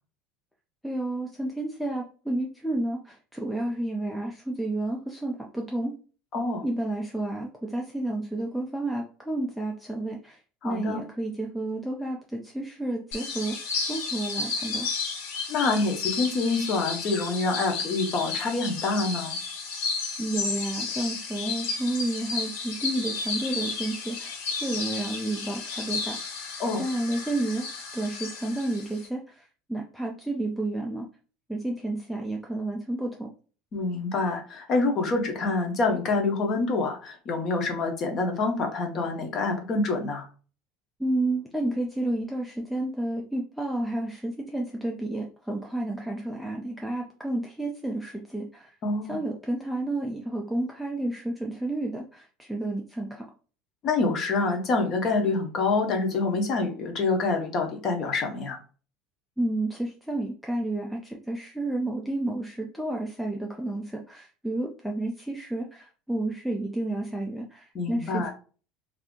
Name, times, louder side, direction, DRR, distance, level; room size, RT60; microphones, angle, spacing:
voice 1, 0.8-5.9 6.6-13.6 13.8-14.9 20.2-26.2 26.8-27.7 27.9-31.1 31.5-33.3 41.0-48.7 49.1-53.2 59.4-68.3, right 2 dB, ahead, 0 dB, 0.3 m, -31 dB
voice 2, 6.3-6.6 10.6-11.0 15.5-19.4 26.6-26.8 33.7-40.3 48.8-49.2 53.8-58.6 67.7-68.3, left 3 dB, 30° left, 4 dB, 0.7 m, -26 dB
sound 1, 13.1-29.1, left 4 dB, 75° left, 1.0 m, -33 dB
2.6 x 2.4 x 3.6 m, 0.38 s
cardioid pair, 180°, 0 cm